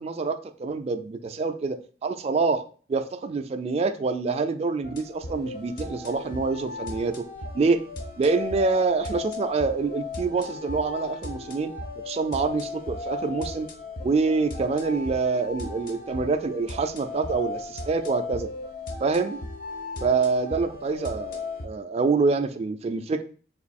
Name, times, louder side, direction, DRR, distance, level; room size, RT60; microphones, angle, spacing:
voice 1, 0.0-2.6 2.9-7.3 7.5-7.8 8.2-13.7 14.0-18.5 19.0-19.4 20.0-23.2, right 4 dB, 35° right, 8 dB, 0.3 m, -26 dB
sound 1, 4.8-21.7, left 3 dB, 55° left, 0.7 m, -36 dB
3.0 x 2.6 x 4.1 m, 0.41 s
head